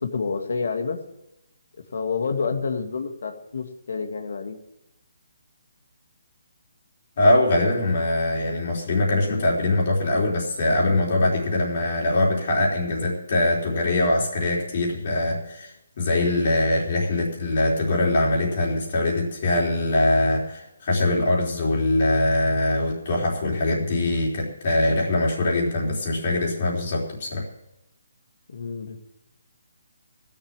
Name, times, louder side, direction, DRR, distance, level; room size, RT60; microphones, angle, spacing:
voice 1, 0.0-1.0 1.9-4.6 28.5-29.0, left 5 dB, 60° left, 5 dB, 2.0 m, -28 dB
voice 2, 7.2-15.7 16.0-27.5, left 2 dB, 40° left, -2 dB, 3.8 m, -22 dB
16.5 x 7.1 x 7.5 m, 0.88 s
hypercardioid pair, 170°, 0 cm